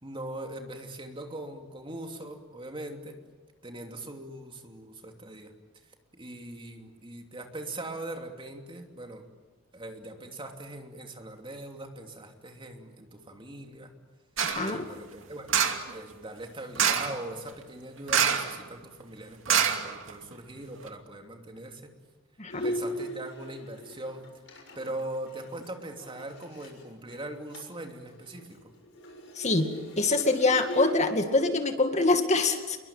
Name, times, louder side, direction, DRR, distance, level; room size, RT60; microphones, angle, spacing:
voice 1, 0.0-3.2 3.6-5.5 6.1-9.3 9.7-13.9 14.6-15.6 15.9-21.9 22.6-24.3 24.7-28.7, right 1 dB, 25° right, 4 dB, 3.0 m, -41 dB
voice 2, 14.4-14.8 22.4-22.7 29.4-29.7 30.0-32.8, left 3 dB, 35° left, 6 dB, 2.2 m, -25 dB
sound 1, 14.4-14.7 15.5-15.9 16.7-17.2 18.1-18.6 18.8-18.9 19.5-20.3 20.8-20.9, right 7 dB, 75° right, 2.5 m, -25 dB
Bowed string instrument, 22.5-26.8 27.1-27.2 27.5-27.8 28.1-31.0, equal, 65° left, 6.9 m, -38 dB
28.5 x 22.5 x 9.1 m, 1.2 s
head